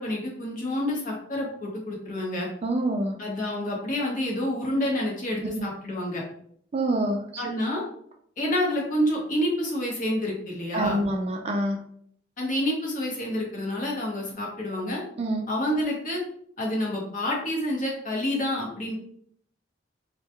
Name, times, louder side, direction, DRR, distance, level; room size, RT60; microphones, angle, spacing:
voice 1, 0.0-2.5 3.2-6.2 7.4-7.8 8.4-11.0 12.4-15.0 15.5-16.2 16.6-18.9, left 1 dB, 45° left, -2 dB, 0.8 m, -28 dB
voice 2, 2.6-3.2 5.4-5.6 6.7-7.4 10.7-11.8 15.2-15.4, right 1 dB, 35° right, 3 dB, 0.3 m, -26 dB
2.2 x 2.1 x 2.8 m, 0.63 s
head